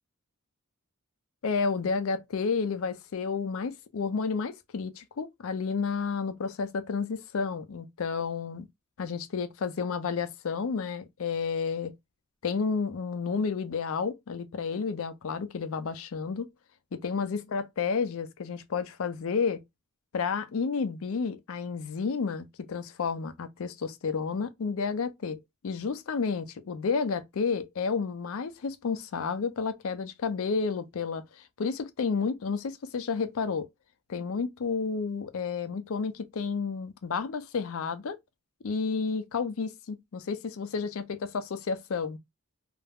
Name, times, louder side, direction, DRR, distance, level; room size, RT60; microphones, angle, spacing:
voice 1, 1.4-8.7 9.0-11.9 12.4-16.5 16.9-19.6 20.1-33.7 34.1-38.2 38.6-42.2, left 5 dB, 70° left, 0.4 m, -31 dB
2.4 x 2.0 x 3.4 m
head